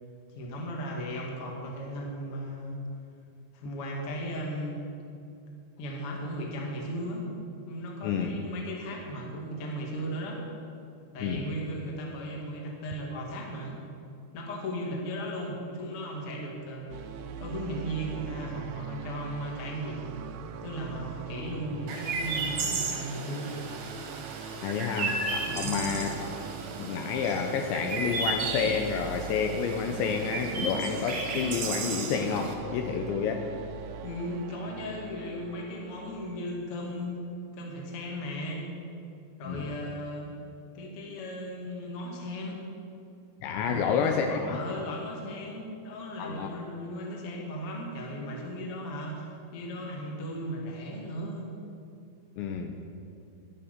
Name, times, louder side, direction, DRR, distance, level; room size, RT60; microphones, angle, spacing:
voice 1, 0.3-2.8 3.5-4.8 5.8-7.2 7.7-10.4 11.1-13.8 14.3-20.2 20.6-23.5 25.4-25.8 34.0-37.2 37.5-38.7 39.4-40.3 40.7-42.6 43.6-51.5, equal, 50° left, -1 dB, 1.7 m, -36 dB
sound 1, 16.9-36.4, right 7 dB, 85° right, 3.0 m, -42 dB
Chirp tweet, 21.9-32.5, right 3 dB, 65° right, 2.2 m, -34 dB
voice 2, 24.6-26.3 26.8-33.5 39.5-39.7 43.4-44.6 46.2-46.5 52.4-52.8, left 6 dB, 80° left, 4 dB, 2.8 m, -29 dB
11.5 x 11.0 x 6.6 m, 2.6 s
omnidirectional pair, 5.6 m